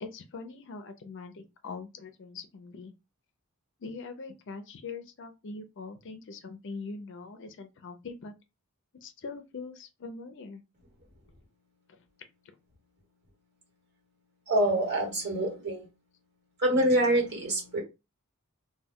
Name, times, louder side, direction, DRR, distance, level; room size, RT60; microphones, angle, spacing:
voice 1, 0.0-2.9 3.8-8.3 9.0-10.6 11.9-12.0, left 4 dB, 55° left, 0.5 m, -42 dB
voice 2, 14.5-15.9 16.6-17.8, right 1 dB, 50° right, 1.3 m, -26 dB
2.2 x 2.2 x 3.5 m
head